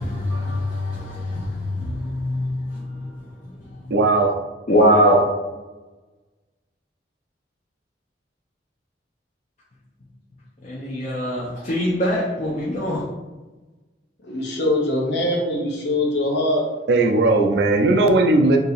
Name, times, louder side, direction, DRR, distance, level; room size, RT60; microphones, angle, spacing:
voice 1, 0.0-3.9 4.7-5.2 10.6-13.0, equal, 45° left, 0.6 m, -23 dB
voice 2, 3.9-4.4 16.9-18.6, right 2 dB, 65° right, 0.5 m, -17 dB
voice 3, 14.2-16.7, left 1 dB, 70° left, 0.9 m, -22 dB
2.8 x 2.7 x 4.0 m
head